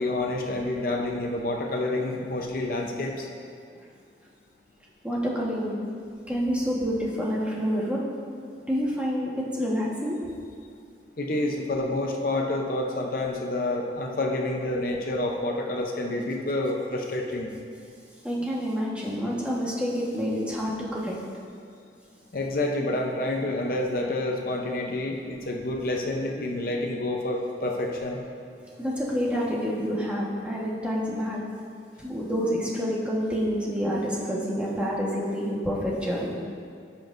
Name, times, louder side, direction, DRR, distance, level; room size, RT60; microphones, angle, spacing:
voice 1, 0.0-3.3 11.2-17.5 22.3-28.2, left 2 dB, 55° left, 1 dB, 0.7 m, -28 dB
voice 2, 5.0-5.7 6.3-8.0 8.7-10.2 18.2-21.2 28.8-31.4 32.0-36.4, equal, 5° right, -5 dB, 1.2 m, -28 dB
15.5 x 6.0 x 2.6 m, 2.3 s
head